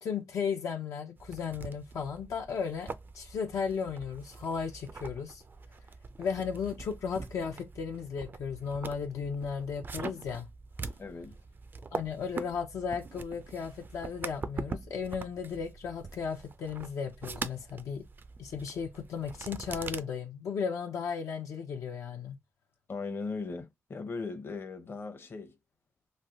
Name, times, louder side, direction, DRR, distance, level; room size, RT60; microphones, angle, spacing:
voice 1, 0.0-5.4 6.2-10.5 11.9-18.0 18.4-22.4, left 6 dB, 85° left, 0.6 m, -35 dB
sound 1, 1.2-20.0, right 4 dB, 40° right, 0.3 m, -43 dB
voice 2, 11.0-11.4 22.9-25.6, left 4 dB, 45° left, 0.7 m, -38 dB
3.2 x 2.3 x 2.6 m
cardioid pair, 80°, 5 cm